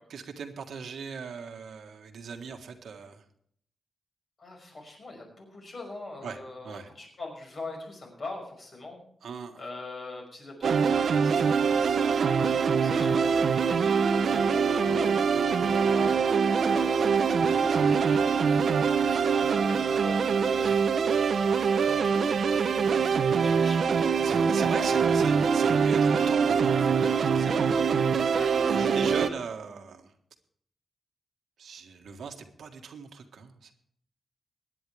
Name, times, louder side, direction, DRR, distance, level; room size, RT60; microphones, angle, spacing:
voice 1, 0.1-3.2 6.2-6.4 6.6-6.9 9.2-9.6 20.6-20.9 22.5-22.7 24.2-26.9 27.3-27.7 28.7-30.1 31.6-33.7, right 6 dB, 90° right, 4 dB, 1.6 m, -39 dB
voice 2, 4.4-9.0 9.6-13.8 14.2-17.1 17.7-20.8 21.5-25.0 28.4-29.4, left 2 dB, 40° left, 1 dB, 5.6 m, -43 dB
sound 1, 10.6-29.3, right 6 dB, 65° right, 0.8 m, -24 dB
23.0 x 10.0 x 3.4 m, 0.64 s
wide cardioid pair, 180°, 0 cm